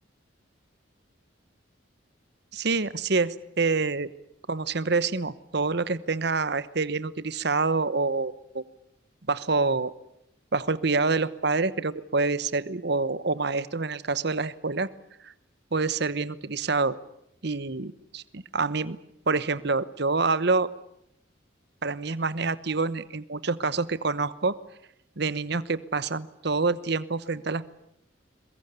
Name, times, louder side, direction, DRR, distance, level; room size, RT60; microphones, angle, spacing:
voice 1, 2.5-4.1 4.5-8.6 9.3-9.9 10.5-14.9 15.2-15.3 15.7-17.0 17.4-19.0 19.3-20.7 21.8-24.5 25.2-27.7, right 3 dB, 60° right, 15 dB, 1.0 m, -27 dB
22.5 x 21.5 x 9.7 m, 0.77 s
head